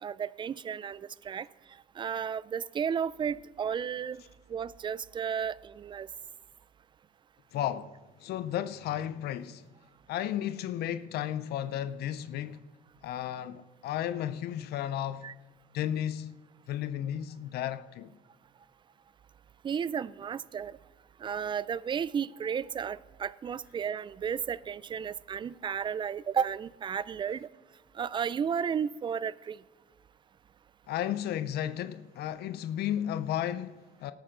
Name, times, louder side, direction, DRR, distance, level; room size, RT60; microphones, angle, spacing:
voice 1, 0.0-1.5 2.0-4.2 4.5-6.1 15.2-15.3 19.6-20.8 21.2-27.5 27.9-29.6, right 7 dB, 30° right, 0.3 m, -33 dB
voice 2, 7.5-9.6 10.1-12.6 13.0-15.3 15.7-16.3 16.7-18.1 30.9-34.1, left 11 dB, 70° left, 0.6 m, -33 dB
18.0 x 9.0 x 3.8 m
cardioid pair, 110°, 17 cm